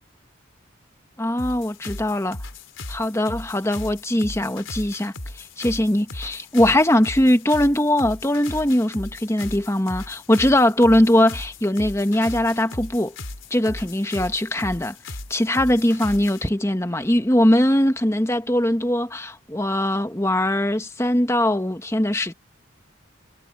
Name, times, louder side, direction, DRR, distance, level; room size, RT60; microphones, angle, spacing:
voice 1, 1.2-2.4 2.9-13.1 13.5-14.9 15.3-22.3, left 1 dB, 15° left, 1.3 m, -21 dB
sound 1, 1.4-16.5, left 2 dB, 80° left, 3.6 m, -37 dB
head